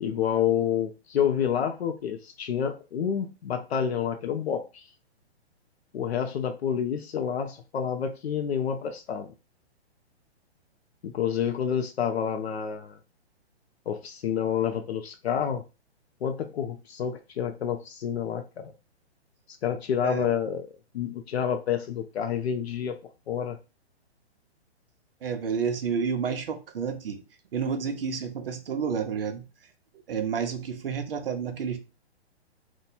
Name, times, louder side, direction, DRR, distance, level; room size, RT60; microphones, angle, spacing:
voice 1, 0.0-4.8 5.9-9.3 11.0-13.0 13.9-15.6 16.2-18.7 19.6-20.7 20.9-23.0 23.3-23.6, left 8 dB, 70° left, 0.5 m, -28 dB
voice 2, 25.2-27.2 27.5-29.4 30.1-31.8, right 6 dB, 60° right, 0.7 m, -30 dB
2.9 x 2.2 x 4.1 m
hypercardioid pair, 180°, 33 cm